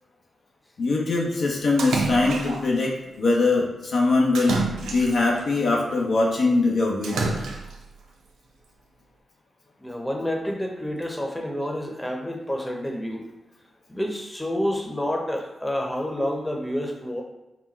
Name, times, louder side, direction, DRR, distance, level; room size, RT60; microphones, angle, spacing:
voice 1, 0.8-4.6 4.9-7.3, left 3 dB, 70° left, -2 dB, 0.8 m, -22 dB
Splash splatter, 1.8-2.8 4.3-5.4 7.0-7.9, right 3 dB, 90° right, 0.4 m, -28 dB
voice 2, 9.8-13.2 13.9-17.2, equal, 10° left, 1 dB, 0.9 m, -29 dB
4.1 x 2.2 x 4.2 m, 0.98 s
supercardioid pair, 40°, 0 cm